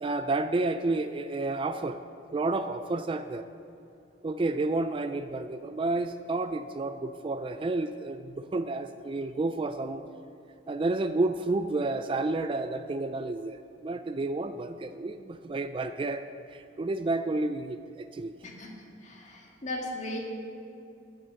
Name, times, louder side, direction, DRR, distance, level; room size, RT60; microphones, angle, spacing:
voice 1, 0.0-2.0 2.3-3.4 4.2-10.0 10.7-16.2 16.5-18.3, right 2 dB, 30° right, 10 dB, 0.3 m, -30 dB
voice 2, 18.4-18.8 19.0-20.2, left 1 dB, 40° left, 0 dB, 1.8 m, -37 dB
14.5 x 6.3 x 6.9 m, 2.7 s
head